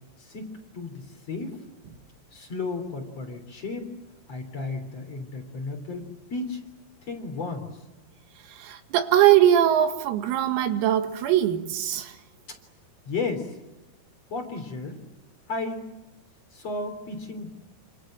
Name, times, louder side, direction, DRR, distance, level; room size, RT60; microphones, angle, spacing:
voice 1, 0.2-1.6 2.3-3.9 4.3-6.6 7.0-7.7 12.5-12.6 13.1-13.6 14.3-15.0 15.5-15.9 16.5-17.5, left 3 dB, 35° left, 3.9 m, -33 dB
voice 2, 8.5-12.2, right 11 dB, 85° right, 4.7 m, -21 dB
29.0 x 26.5 x 7.8 m
omnidirectional pair, 6.0 m